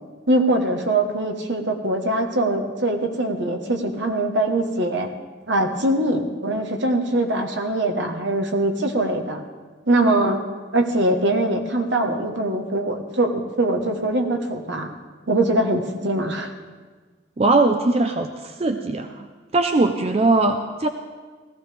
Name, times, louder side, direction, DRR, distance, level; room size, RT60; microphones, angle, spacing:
voice 1, 0.3-5.1 5.5-9.4 9.9-10.4 10.7-14.9 15.3-16.5, right 1 dB, 70° right, 3 dB, 1.3 m, -22 dB
voice 2, 17.4-19.3 19.5-20.9, right 2 dB, 30° right, 6 dB, 0.5 m, -20 dB
17.0 x 14.5 x 3.4 m, 1.4 s
head